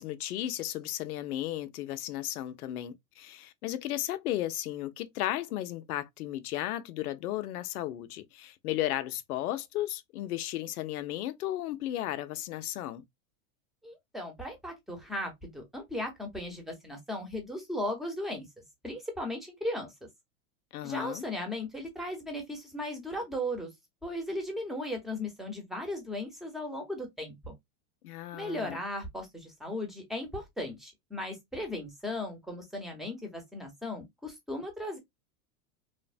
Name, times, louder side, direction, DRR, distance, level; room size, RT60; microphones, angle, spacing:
voice 1, 0.0-13.0 20.7-21.2 28.0-28.8, left 13 dB, 85° left, 0.6 m, -34 dB
voice 2, 13.8-18.5 18.8-19.9 20.8-23.7 24.0-27.5 28.3-35.0, left 1 dB, ahead, 0.8 m, -37 dB
3.2 x 2.1 x 2.4 m
supercardioid pair, 130°, 43 cm